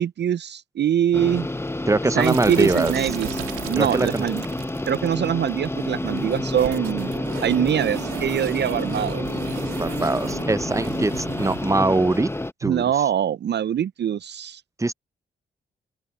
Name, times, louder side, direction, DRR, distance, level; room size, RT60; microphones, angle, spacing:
voice 1, 0.0-1.5 2.1-3.4 3.7-4.4 4.9-7.1 7.4-9.2 12.6-14.6, right 9 dB, 55° right, 0.5 m, -23 dB
sound 1, 1.1-12.5, left 2 dB, 10° left, 0.9 m, -29 dB
voice 2, 1.9-2.9 3.8-4.2 9.7-12.3 12.6-12.9 14.8-14.9, right 2 dB, 15° right, 0.6 m, -22 dB
sound 2, 2.2-11.7, right 14 dB, 85° right, 1.9 m, -36 dB
open air
hypercardioid pair, 40°, 21 cm